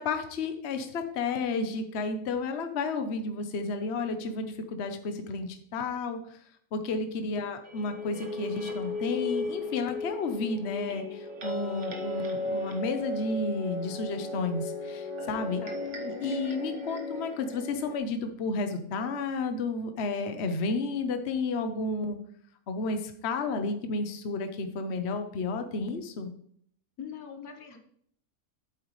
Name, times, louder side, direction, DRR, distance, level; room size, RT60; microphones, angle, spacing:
voice 1, 0.0-6.4 6.7-15.6 16.0-22.2 22.7-26.3, left 3 dB, 50° left, 7 dB, 1.0 m, -32 dB
sound 1, 7.6-18.0, left 2 dB, 50° right, 1.7 m, -35 dB
voice 2, 27.0-27.8, left 7 dB, 75° left, 6 dB, 1.6 m, -42 dB
8.9 x 8.0 x 3.1 m, 0.65 s
omnidirectional pair, 1.6 m